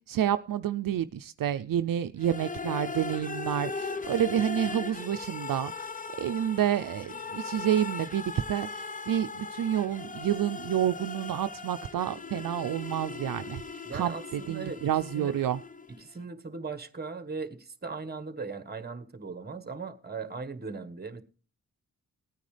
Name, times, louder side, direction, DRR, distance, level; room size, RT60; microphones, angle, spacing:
voice 1, 0.1-5.9 6.2-13.6 13.9-15.6, right 10 dB, 70° right, 10 dB, 0.5 m, -29 dB
sound 1, 2.2-16.0, left 4 dB, 25° left, 0.7 m, -39 dB
voice 2, 13.8-14.9 15.1-15.3 15.9-21.2, right 4 dB, 30° right, 11 dB, 1.4 m, -38 dB
18.5 x 9.3 x 3.3 m, 0.39 s
wide cardioid pair, 85°, 34 cm